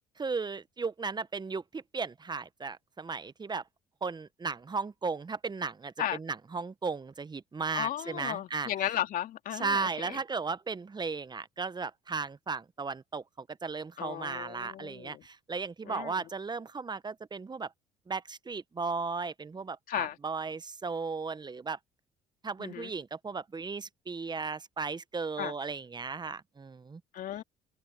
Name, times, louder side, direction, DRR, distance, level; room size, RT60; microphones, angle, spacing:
voice 1, 0.2-3.6 4.0-8.7 9.5-17.7 18.1-21.8 22.4-27.0, right 4 dB, 25° right, 1.2 m, -36 dB
voice 2, 7.7-10.2 14.0-15.2 15.9-16.2 19.9-20.2 22.6-22.9 25.4-25.5 27.1-27.4, left 11 dB, 60° left, 2.9 m, -35 dB
hypercardioid pair, 60°, 16 cm